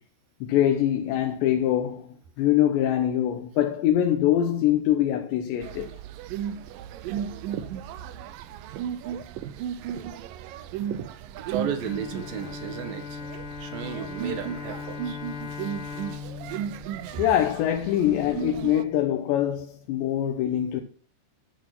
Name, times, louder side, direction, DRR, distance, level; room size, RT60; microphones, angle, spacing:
voice 1, 0.4-5.9 17.2-20.8, left 11 dB, 85° left, 3.4 m, -24 dB
sound 1, 5.6-18.8, right 9 dB, 85° right, 2.0 m, -35 dB
voice 2, 11.5-13.2 13.6-15.2 15.5-16.6 17.0-17.2, right 8 dB, 65° right, 2.9 m, -35 dB
Bowed string instrument, 11.8-18.0, left 6 dB, 65° left, 1.3 m, -39 dB
11.0 x 8.9 x 6.0 m
omnidirectional pair, 4.9 m